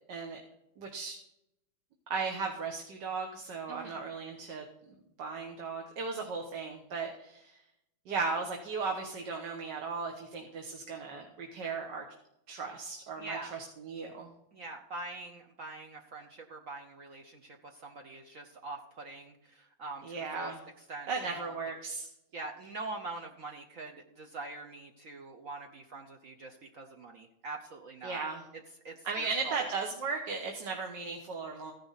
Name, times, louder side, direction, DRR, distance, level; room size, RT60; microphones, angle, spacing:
voice 1, 0.1-0.4 0.8-1.2 2.1-4.6 5.2-7.6 8.1-12.0 12.5-14.3 20.0-20.6 21.1-22.1 28.0-28.4 29.0-31.7, right 4 dB, 70° right, 2 dB, 1.9 m, -36 dB
voice 2, 3.7-4.0 13.2-13.5 14.5-20.5 20.9-21.6 22.3-28.2 28.8-29.7, right 3 dB, 55° right, 2 dB, 1.2 m, -44 dB
15.0 x 10.5 x 4.1 m, 0.83 s
omnidirectional pair, 2.0 m